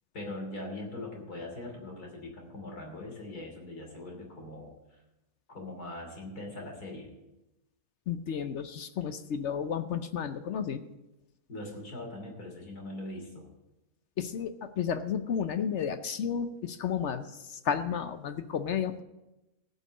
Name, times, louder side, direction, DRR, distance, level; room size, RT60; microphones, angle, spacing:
voice 1, 0.1-4.7 5.5-7.1 11.5-13.4, left 1 dB, 85° left, 0 dB, 3.4 m, -41 dB
voice 2, 8.1-10.8 14.2-19.0, left 7 dB, 60° left, 10 dB, 0.8 m, -32 dB
15.0 x 5.6 x 8.6 m, 0.98 s
omnidirectional pair, 1.6 m